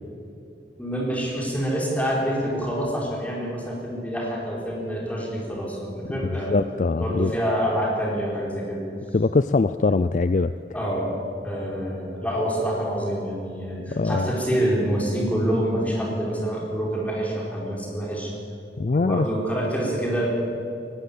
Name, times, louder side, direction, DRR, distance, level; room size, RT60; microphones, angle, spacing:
voice 1, 0.8-6.6 7.0-8.8 10.7-11.1 11.4-18.3 18.9-20.4, equal, 10° left, -2 dB, 4.4 m, -26 dB
voice 2, 6.2-7.3 9.1-10.5 13.9-14.3 18.8-19.3, left 3 dB, 40° left, 13 dB, 0.4 m, -22 dB
18.5 x 18.0 x 8.5 m, 2.6 s
head